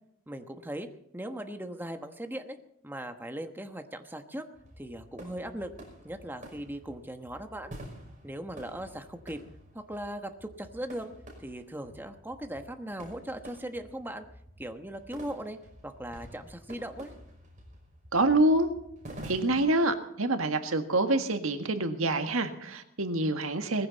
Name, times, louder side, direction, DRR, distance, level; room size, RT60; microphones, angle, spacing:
voice 1, 0.3-0.9 1.1-2.6 2.8-4.5 4.8-5.7 6.0-7.7 8.2-9.4 9.7-11.1 11.4-14.2 14.6-15.6 15.8-17.1, right 1 dB, 10° right, 6 dB, 1.1 m, -39 dB
sound 1, 4.5-19.9, right 1 dB, 35° right, 5.6 m, -49 dB
voice 2, 18.1-18.7 19.2-23.9, right 2 dB, 80° right, 7 dB, 1.7 m, -26 dB
19.5 x 15.5 x 4.1 m, 0.76 s
head